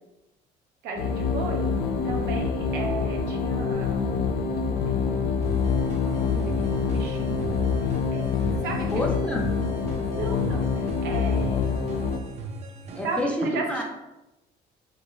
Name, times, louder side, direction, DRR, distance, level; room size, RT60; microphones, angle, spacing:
voice 1, 0.8-1.6 2.0-4.0 4.9-5.1 5.8-7.5 8.1-8.3 8.6-9.1 10.1-11.8 13.0-13.8, right 4 dB, 85° right, 0 dB, 0.7 m, -35 dB
sound 1, 1.0-12.2, left 5 dB, 80° left, 0.4 m, -26 dB
sound 2, 5.4-13.2, right 3 dB, 40° right, 0.5 m, -40 dB
voice 2, 8.9-9.5 12.9-13.8, left 1 dB, 5° left, -1 dB, 0.5 m, -28 dB
3.1 x 2.4 x 3.0 m, 0.96 s
cardioid pair, 110°, 17 cm